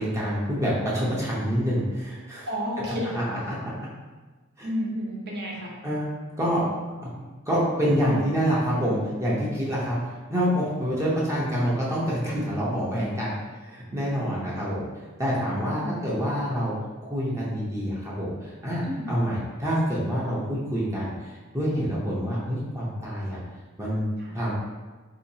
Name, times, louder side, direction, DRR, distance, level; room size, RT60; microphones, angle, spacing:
voice 1, 0.0-2.5 3.5-3.7 4.6-4.7 5.8-6.1 6.4-6.7 7.5-13.4 13.6-14.9 15.2-16.7 17.0-23.4 23.8-24.1 24.3-24.5, equal, 15° right, -7 dB, 0.6 m, -27 dB
voice 2, 2.5-3.1 4.6-5.8 15.8-16.1 18.8-19.2 24.2-24.4, equal, 50° right, -3 dB, 0.8 m, -31 dB
3.9 x 2.8 x 2.7 m, 1.3 s
head